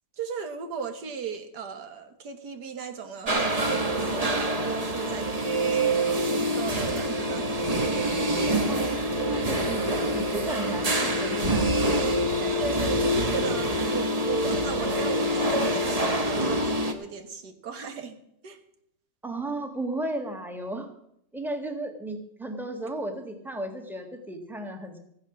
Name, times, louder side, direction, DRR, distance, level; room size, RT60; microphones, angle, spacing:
voice 1, 0.2-7.8 12.4-18.2 18.4-18.6, right 6 dB, 70° right, 8 dB, 1.9 m, -36 dB
sound 1, 3.3-16.9, right 1 dB, 25° right, 1.0 m, -26 dB
voice 2, 8.7-11.7 19.2-20.9 21.3-25.0, right 1 dB, ahead, 5 dB, 1.4 m, -34 dB
15.0 x 9.8 x 6.1 m, 0.76 s
omnidirectional pair, 1.9 m